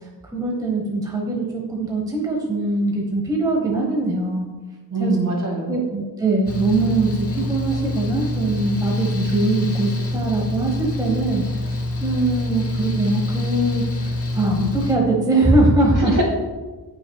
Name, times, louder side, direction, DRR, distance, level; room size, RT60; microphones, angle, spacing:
voice 1, 0.3-4.5 5.0-5.1 5.7-16.1, right 2 dB, 10° right, -2 dB, 1.2 m, -22 dB
voice 2, 4.9-5.8 15.9-16.2, right 1 dB, 50° right, -2 dB, 2.8 m, -23 dB
Mechanical fan, 6.5-15.0, left 1 dB, 35° left, 0.9 m, -26 dB
17.5 x 6.0 x 2.3 m, 1.3 s
wide cardioid pair, 160°, 39 cm